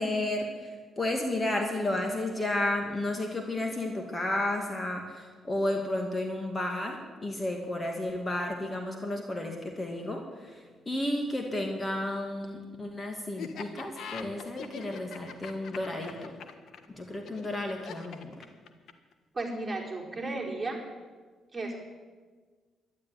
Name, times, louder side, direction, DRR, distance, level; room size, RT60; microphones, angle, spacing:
voice 1, 0.0-16.4 16.9-18.4, left 1 dB, 25° left, 3 dB, 2.3 m, -32 dB
Laughter, 13.4-19.1, left 7 dB, 70° left, 1.4 m, -42 dB
voice 2, 19.3-20.8 21.5-21.8, right 2 dB, 20° right, -2 dB, 4.6 m, -34 dB
12.5 x 11.5 x 9.7 m, 1.5 s
cardioid pair, 85°, 0 cm